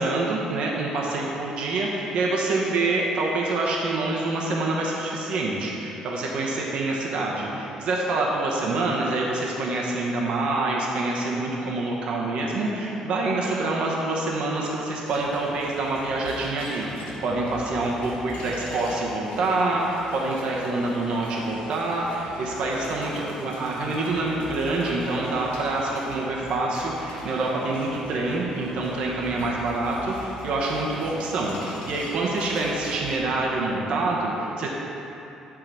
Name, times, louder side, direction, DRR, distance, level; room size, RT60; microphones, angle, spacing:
voice 1, 0.0-34.7, right 2 dB, 55° right, -3 dB, 1.0 m, -26 dB
sound 1, 15.1-33.2, left 1 dB, 80° left, 1.4 m, -40 dB
9.0 x 3.8 x 4.7 m, 2.9 s
cardioid pair, 160°, 2 cm